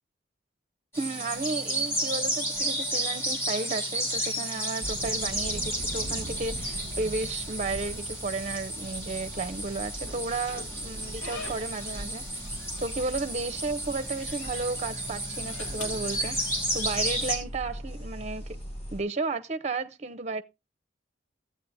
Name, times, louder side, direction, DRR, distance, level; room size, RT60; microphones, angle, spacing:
sound 1, 0.9-17.4, right 1 dB, 15° left, 3.1 m, -32 dB
voice 1, 1.0-12.4 12.8-16.4 16.7-18.6 18.9-20.4, right 3 dB, 35° right, 0.6 m, -33 dB
sound 2, 4.8-19.0, right 1 dB, 30° left, 5.2 m, -41 dB
Slam / Squeak, 10.1-12.1 12.4-13.4 13.7-14.6 15.3-16.8, left 2 dB, 85° left, 3.0 m, -45 dB
14.5 x 8.4 x 2.6 m
head